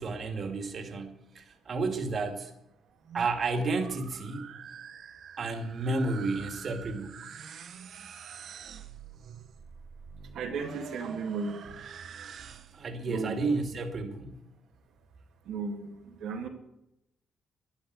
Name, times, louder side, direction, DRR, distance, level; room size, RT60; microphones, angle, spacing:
voice 1, 0.0-2.5 3.1-4.5 5.4-7.2 12.7-14.4, right 3 dB, 50° right, 4 dB, 2.3 m, -31 dB
sound 1, 2.9-12.9, right 7 dB, 65° right, 1.0 m, -46 dB
voice 2, 10.3-11.6 13.1-13.3 15.5-16.5, right 5 dB, 80° right, 0 dB, 2.0 m, -35 dB
12.5 x 10.5 x 8.0 m, 0.85 s
cardioid pair, 90°, 0 cm